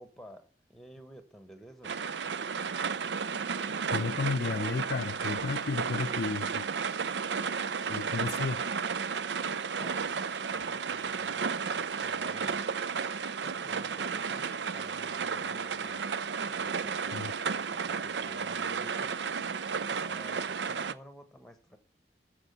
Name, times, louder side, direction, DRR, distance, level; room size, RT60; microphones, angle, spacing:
voice 1, 0.0-2.0 8.2-8.6 9.7-12.6 13.4-21.8, equal, ahead, 1.3 m, -53 dB
Moderate Rain (as heard from inside a car), 1.8-20.9, right 6 dB, 90° right, 0.6 m, -33 dB
voice 2, 3.9-6.7 7.9-8.6 17.1-17.3, left 4 dB, 65° left, 0.4 m, -33 dB
14.0 x 5.0 x 6.9 m
head